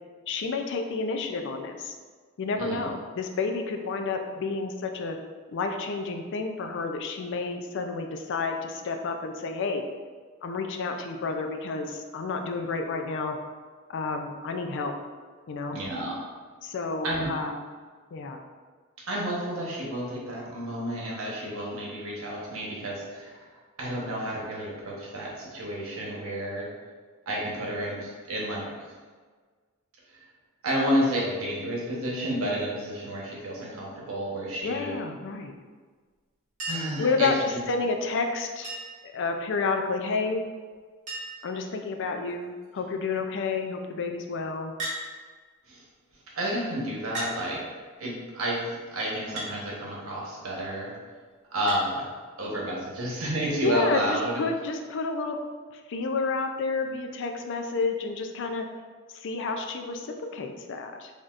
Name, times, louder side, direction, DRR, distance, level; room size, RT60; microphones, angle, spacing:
voice 1, 0.3-2.0 2.4-5.2 5.5-9.8 10.4-13.4 13.9-14.9 15.5-15.8 16.6-17.5 18.1-18.4 34.6-35.5 37.0-38.7 39.0-40.4 41.4-44.7 53.6-55.4 55.7-58.6 59.1-61.1, left 4 dB, 60° left, 5 dB, 0.4 m, -30 dB
voice 2, 2.6-2.9 15.7-16.2 17.0-17.3 19.1-23.5 23.8-26.7 27.3-28.9 30.1-30.2 30.6-34.9 36.7-37.6 45.7-45.8 46.4-47.6 48.0-50.9 51.5-52.1 52.4-54.4, equal, 80° right, -3 dB, 1.1 m, -31 dB
Chink clink, 36.6-37.0 38.6-39.1 40.4-40.5 40.7-40.8 41.1-41.5 42.3-42.6 44.8-45.0 46.1-46.2 47.1-47.4 49.4-49.5 51.7-51.8 53.3-53.4, right 1 dB, 35° right, 1.3 m, -35 dB
4.0 x 3.5 x 2.4 m, 1.5 s
head